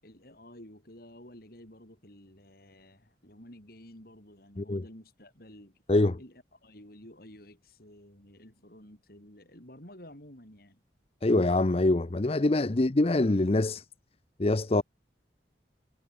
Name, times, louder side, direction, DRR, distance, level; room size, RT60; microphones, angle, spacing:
voice 1, 0.0-5.8 6.2-10.8, left 1 dB, 55° left, 6.8 m, -52 dB
voice 2, 11.2-13.8 14.4-14.8, left 2 dB, 35° left, 0.6 m, -24 dB
head